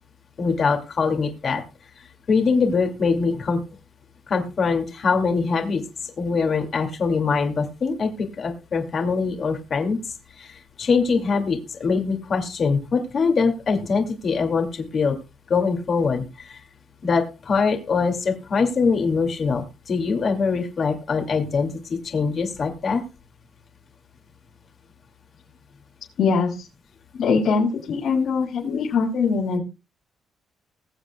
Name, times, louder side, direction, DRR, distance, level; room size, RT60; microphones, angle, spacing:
voice 1, 0.4-1.6 2.3-3.6 4.3-10.0 10.4-15.1 15.5-16.6 17.0-23.0, left 5 dB, 50° left, 4 dB, 2.5 m, -23 dB
voice 2, 26.2-26.7 27.1-29.6, left 5 dB, 70° left, -5 dB, 5.4 m, -22 dB
21.5 x 7.6 x 2.4 m, 0.28 s
cardioid pair, 90°, 0 cm